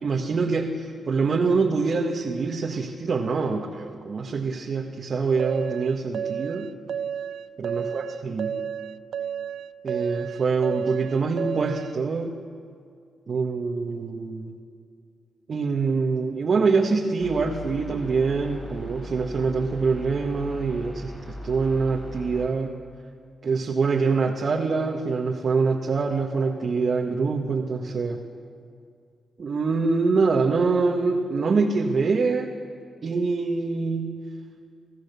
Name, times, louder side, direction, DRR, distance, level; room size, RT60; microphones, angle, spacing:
voice 1, 0.0-6.7 7.6-8.6 9.8-12.3 13.3-14.6 15.5-22.8 23.4-28.2 29.4-32.5 33.0-34.2, right 4 dB, 55° right, 0 dB, 1.7 m, -25 dB
sound 1, 5.4-11.9, right 8 dB, 80° right, 0.5 m, -31 dB
sound 2, 17.2-22.5, equal, 30° left, 7.6 m, -39 dB
28.5 x 16.0 x 7.0 m, 2.3 s
cardioid pair, 80°, 0 cm